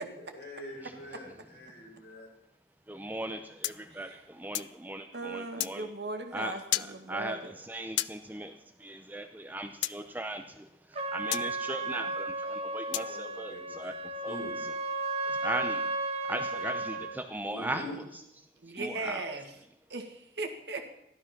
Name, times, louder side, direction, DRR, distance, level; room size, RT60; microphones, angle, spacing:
voice 1, 0.0-2.3 12.9-13.8 14.2-14.5 17.5-18.0, left 1 dB, 60° left, -2 dB, 5.4 m, -44 dB
voice 2, 2.9-5.9 6.3-13.9 14.2-14.4 15.4-15.9 16.3-17.9 18.7-19.3, right 1 dB, 10° right, 7 dB, 0.7 m, -38 dB
sound 1, 3.6-4.8 5.6-5.8 6.7-6.9 8.0-8.2 9.8-10.0 11.3-11.5 12.9-13.1, left 15 dB, 80° left, 0.4 m, -32 dB
voice 3, 5.1-7.5 18.6-19.6 19.9-20.9, right 3 dB, 70° right, 5 dB, 2.0 m, -38 dB
Trumpet, 10.9-17.2, right 2 dB, 35° right, 1.4 m, -34 dB
15.0 x 12.0 x 6.0 m, 0.81 s
head